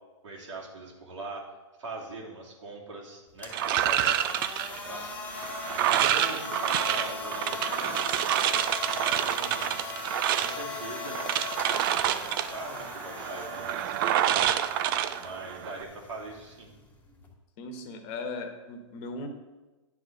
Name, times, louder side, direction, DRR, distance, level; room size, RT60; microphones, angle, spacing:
voice 1, 0.2-1.5 1.8-5.1 5.7-8.0 8.8-9.8 10.3-11.3 11.9-14.4 15.2-16.7, right 2 dB, 75° right, -2 dB, 3.0 m, -42 dB
sound 1, 3.3-17.3, left 4 dB, 10° left, 1.6 m, -39 dB
sound 2, 3.5-15.8, right 11 dB, 45° right, 0.6 m, -28 dB
voice 2, 17.6-19.3, left 3 dB, 35° left, 6 dB, 1.4 m, -38 dB
10.0 x 5.0 x 6.8 m, 1.1 s
hypercardioid pair, 130°, 16 cm